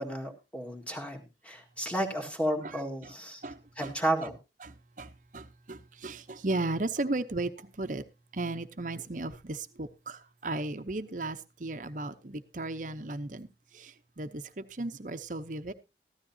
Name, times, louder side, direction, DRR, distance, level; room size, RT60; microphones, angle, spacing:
voice 1, 0.0-3.4 3.8-4.4, right 1 dB, 5° left, 1.8 m, -32 dB
voice 2, 3.4-3.9 4.2-4.3 4.6-8.0 8.3-13.5 13.7-15.7, right 2 dB, 45° right, 0.8 m, -35 dB
14.5 x 12.5 x 2.8 m
head